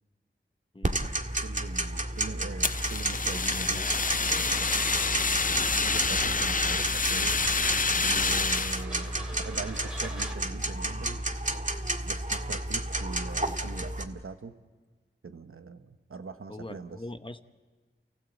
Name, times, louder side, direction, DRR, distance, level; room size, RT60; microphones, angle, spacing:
voice 1, 0.7-1.1 16.5-17.4, left 1 dB, 25° left, 9 dB, 1.0 m, -42 dB
Tick-tock, 0.8-14.0, right 1 dB, 35° right, 1.8 m, -31 dB
voice 2, 1.4-3.8 4.2-5.0 5.6-7.4 8.0-11.2 12.0-14.5 15.2-17.0, right 4 dB, 80° right, 8 dB, 1.1 m, -42 dB
Fire, 2.6-8.8, left 4 dB, 40° left, 0.6 m, -28 dB
sound 1, 3.9-10.4, equal, 5° right, 2.6 m, -45 dB
29.5 x 16.0 x 8.2 m, 1.4 s
wide cardioid pair, 55°, 21 cm